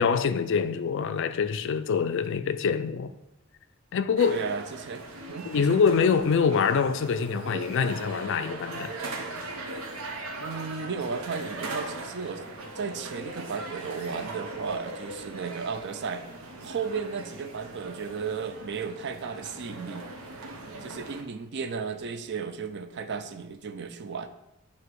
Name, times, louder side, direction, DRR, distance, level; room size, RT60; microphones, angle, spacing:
voice 1, 0.0-3.1 3.9-4.4 5.5-9.0, left 6 dB, 60° left, 0.4 m, -25 dB
sound 1, 4.2-21.2, right 2 dB, 75° right, 0.9 m, -39 dB
voice 2, 4.3-5.8 10.4-12.4 12.8-16.3 16.6-20.1 20.8-24.3, right 5 dB, 55° right, 0.5 m, -34 dB
7.7 x 2.9 x 4.6 m
head